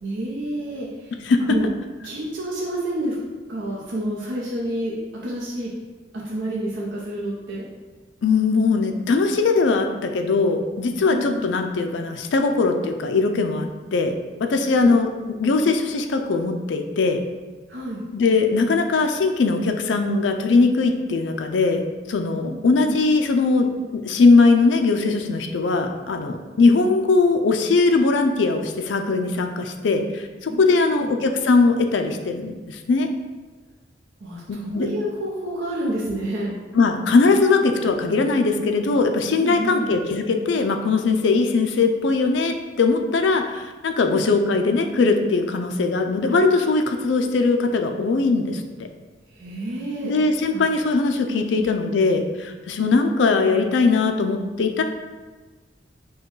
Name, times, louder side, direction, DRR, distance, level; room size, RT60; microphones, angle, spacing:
voice 1, 0.0-1.1 1.5-1.7 2.0-3.2 3.5-4.9 5.2-5.7 6.2-7.7 10.9-11.4 14.7-15.0 17.7-18.1 22.4-22.9 30.5-31.1 34.2-36.6 39.4-39.9 44.0-44.3 49.3-50.1 50.5-50.6 51.3-51.7, right 1 dB, 80° right, -5 dB, 0.7 m, -29 dB
voice 2, 1.2-1.6 8.2-14.1 14.4-15.1 15.4-17.2 18.1-21.8 22.1-23.7 23.9-33.1 34.5-34.9 36.7-48.6 50.0-54.8, left 3 dB, 80° left, 5 dB, 0.4 m, -20 dB
4.6 x 2.3 x 4.6 m, 1.3 s
head